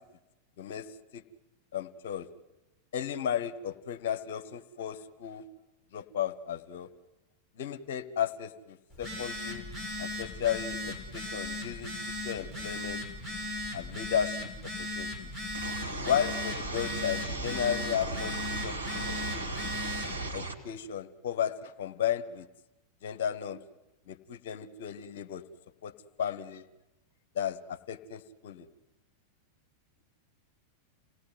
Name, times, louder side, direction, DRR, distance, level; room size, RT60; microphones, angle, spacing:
voice 1, 1.7-2.3 2.9-5.4 5.9-6.9 7.6-9.6 10.0-11.9 12.2-13.0 13.7-15.3 16.0-18.8 19.1-19.5 20.3-22.5 23.0-23.6 24.1-25.4 25.8-25.9 26.2-26.6 27.3-28.7, left 9 dB, 55° left, 12 dB, 1.1 m, -34 dB
Telephone, 8.9-20.2, left 1 dB, 10° right, 5.7 m, -37 dB
sound 1, 15.5-20.5, right 2 dB, 85° right, 2.5 m, -36 dB
28.0 x 18.0 x 9.5 m, 1.0 s
figure-of-eight pair, 90°, 0 cm